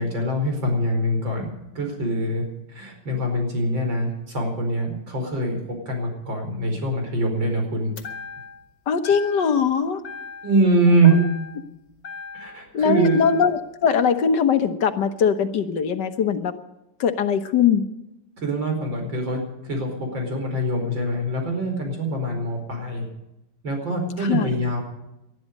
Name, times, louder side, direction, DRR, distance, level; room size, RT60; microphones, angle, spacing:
voice 1, 0.0-1.5 1.8-5.6 5.9-7.9 10.4-11.1 12.3-13.2 18.4-23.0 23.6-24.8, right 2 dB, 85° right, 3 dB, 5.5 m, -23 dB
sound 1, 8.0-8.7 9.0-9.7 10.0-10.7 11.0-12.7 13.0-13.7, left 5 dB, 55° left, 2.3 m, -38 dB
voice 2, 8.9-10.0 11.0-11.2 12.7-16.5 17.0-17.8 24.2-24.5, left 7 dB, 70° left, 9 dB, 1.7 m, -21 dB
20.0 x 12.5 x 5.3 m, 0.90 s
omnidirectional pair, 2.0 m